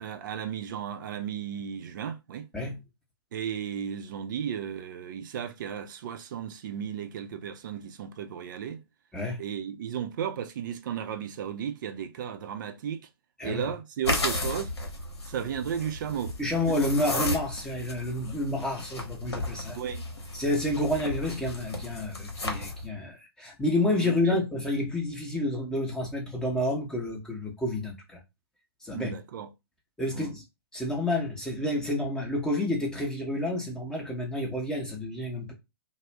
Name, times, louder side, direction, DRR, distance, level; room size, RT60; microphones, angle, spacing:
voice 1, 0.0-2.5 3.3-8.8 9.4-13.1 13.4-14.7 15.3-16.3 16.7-16.8 19.8-20.0 24.0-24.5 28.9-29.5 30.1-30.3, right 8 dB, 50° right, 0.4 m, -34 dB
voice 2, 13.4-13.7 16.4-19.8 20.3-28.2 28.8-29.1 30.0-30.4 30.7-35.5, left 1 dB, 5° left, 0.7 m, -29 dB
sound 1, 14.0-22.9, left 2 dB, 80° left, 0.9 m, -34 dB
2.4 x 2.0 x 3.2 m
figure-of-eight pair, 120°, 14 cm